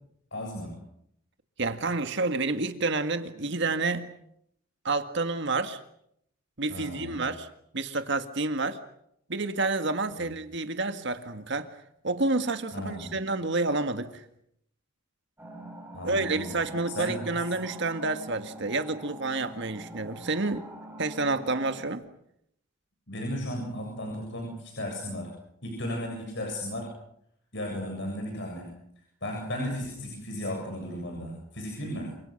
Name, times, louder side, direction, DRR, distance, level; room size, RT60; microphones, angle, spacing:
voice 1, 0.3-0.8 6.7-7.3 10.1-10.3 12.7-13.2 15.9-17.4 23.1-25.3 25.6-26.9 27.5-32.2, left 1 dB, 60° left, 7.6 m, -35 dB
voice 2, 1.6-4.1 4.8-5.8 6.6-7.5 7.7-8.8 9.3-11.7 12.0-14.2 16.0-20.7 21.0-22.0, right 3 dB, 60° right, 1.8 m, -29 dB
sound 1, 15.4-21.9, right 1 dB, 10° right, 4.9 m, -45 dB
29.0 x 27.0 x 6.6 m
head